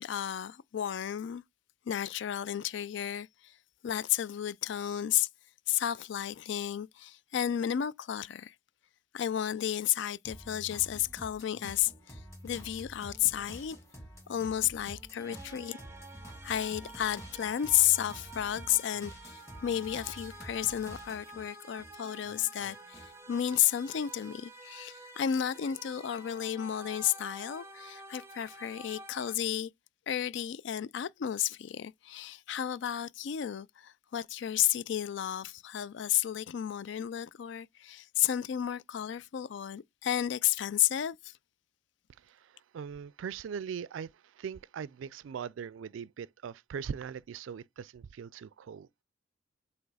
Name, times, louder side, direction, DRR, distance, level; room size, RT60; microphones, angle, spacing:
voice 1, 0.0-1.4 1.9-3.5 3.8-5.3 5.7-8.5 9.1-13.8 14.3-15.8 16.4-29.7 30.1-41.3, left 11 dB, 65° left, 0.3 m, -32 dB
sound 1, 10.2-21.4 21.8-23.2, equal, 15° left, 2.5 m, -49 dB
sound 2, 15.2-29.3, right 2 dB, 15° right, 0.8 m, -50 dB
voice 2, 42.2-49.0, right 7 dB, 80° right, 0.3 m, -41 dB
7.9 x 3.0 x 4.8 m
head